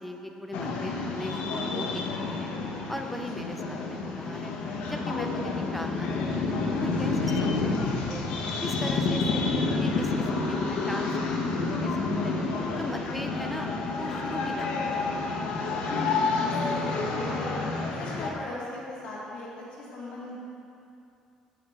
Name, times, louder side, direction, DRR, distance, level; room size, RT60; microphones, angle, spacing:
voice 1, 0.0-2.5 2.9-4.5 4.9-8.2 8.6-9.2 9.5-11.1 11.4-12.3 12.8-15.1, equal, ahead, 4 dB, 0.6 m, -39 dB
sound 1, 0.5-18.3, left 3 dB, 80° left, 1.0 m, -29 dB
voice 2, 15.8-17.6 18.0-20.4, left 2 dB, 55° left, -6 dB, 2.1 m, -38 dB
12.0 x 5.1 x 4.3 m, 2.6 s
cardioid pair, 150°, 2 cm